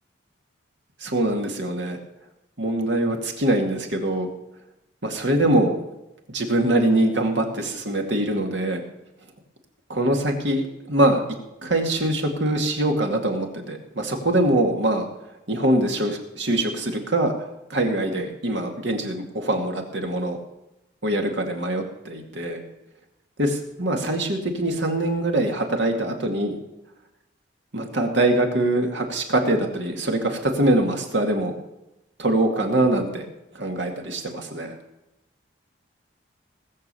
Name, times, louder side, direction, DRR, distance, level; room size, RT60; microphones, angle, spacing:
voice 1, 1.0-2.0 2.6-4.3 5.0-5.7 6.3-8.8 9.9-10.6 10.9-11.2 11.6-15.1 15.5-17.3 17.7-20.4 21.0-22.6 23.4-26.6 27.7-31.5 32.2-33.3 33.5-34.8, right 1 dB, 65° right, 3 dB, 2.3 m, -23 dB
19.0 x 7.3 x 7.0 m, 0.91 s
head